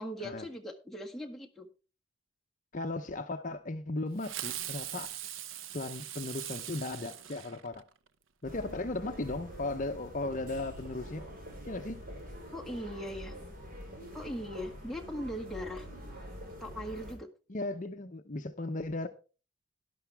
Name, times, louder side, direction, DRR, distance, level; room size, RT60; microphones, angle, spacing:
voice 1, 0.0-1.7 12.5-13.4 14.1-15.9 16.6-17.3, equal, ahead, 1.6 m, -39 dB
voice 2, 2.7-5.1 5.7-7.8 8.4-11.3 11.7-12.0 17.5-19.1, left 2 dB, 40° left, 0.7 m, -36 dB
Fireworks, 4.2-8.1, right 11 dB, 85° right, 0.8 m, -41 dB
sound 1, 8.4-17.2, equal, 45° right, 5.1 m, -45 dB
12.0 x 11.5 x 3.5 m
head